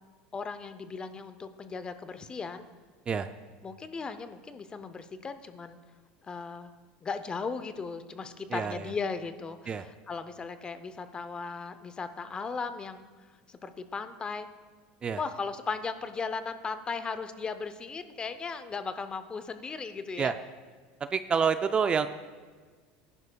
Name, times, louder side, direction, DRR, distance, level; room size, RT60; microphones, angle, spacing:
voice 1, 0.3-2.7 3.6-5.8 6.2-6.7 7.0-14.5 15.2-20.3, left 4 dB, 20° left, 11 dB, 0.6 m, -37 dB
voice 2, 8.5-8.9 9.7-9.8 15.0-15.2 20.2-20.3 21.0-22.1, right 6 dB, 25° right, 10 dB, 0.3 m, -28 dB
17.5 x 10.5 x 2.3 m, 1.5 s
supercardioid pair, 130°, 4 cm